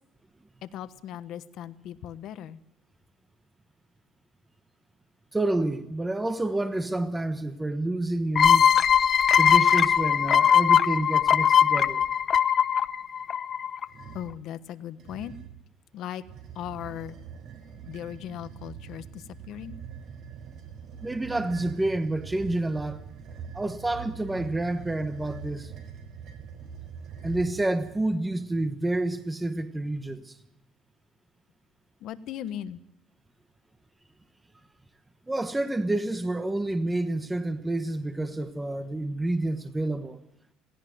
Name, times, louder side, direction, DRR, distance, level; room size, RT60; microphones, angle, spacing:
voice 1, 0.6-2.6 14.1-15.3 15.9-16.2 16.5-17.2 17.9-19.8 32.0-32.8, left 11 dB, 60° left, 1.1 m, -38 dB
voice 2, 5.3-8.7 9.3-12.0 21.0-23.0 23.5-25.7 27.2-30.4 35.3-40.2, right 2 dB, 10° right, 1.2 m, -29 dB
sound 1, 8.4-13.8, left 8 dB, 40° left, 0.7 m, -20 dB
sound 2, 13.9-14.4 15.0-15.6 16.2-28.2, right 7 dB, 55° right, 4.0 m, -43 dB
17.0 x 16.5 x 9.4 m
cardioid pair, 115°, 0 cm